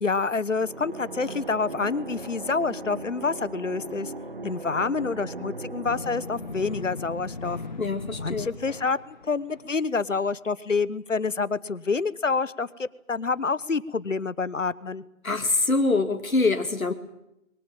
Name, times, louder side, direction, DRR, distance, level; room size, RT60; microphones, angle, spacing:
voice 1, 0.0-4.1 4.4-7.6 8.2-15.0, left 4 dB, 65° left, 18 dB, 1.2 m, -27 dB
sound 1, 0.6-8.2, right 2 dB, 45° right, 2.1 m, -39 dB
sound 2, 5.8-9.7, left 3 dB, 35° left, 1.3 m, -38 dB
voice 2, 7.8-8.5 15.2-16.9, left 3 dB, 90° left, 6 dB, 2.4 m, -24 dB
23.0 x 20.0 x 9.0 m, 0.85 s
figure-of-eight pair, 170°, 41 cm